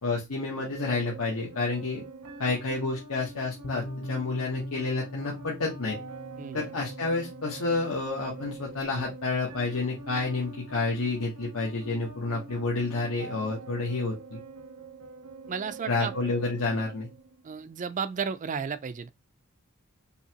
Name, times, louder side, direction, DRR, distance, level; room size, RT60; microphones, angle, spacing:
voice 1, 0.0-2.0 2.4-6.0 6.5-14.4 15.9-17.1, left 3 dB, 75° left, 1.1 m, -29 dB
sound 1, 0.7-17.7, right 3 dB, 80° right, 0.9 m, -45 dB
sound 2, 3.6-11.3, left 1 dB, 60° left, 0.6 m, -44 dB
voice 2, 6.4-6.7 15.5-16.4 17.4-19.1, right 6 dB, 35° right, 0.4 m, -33 dB
5.5 x 2.8 x 2.9 m
head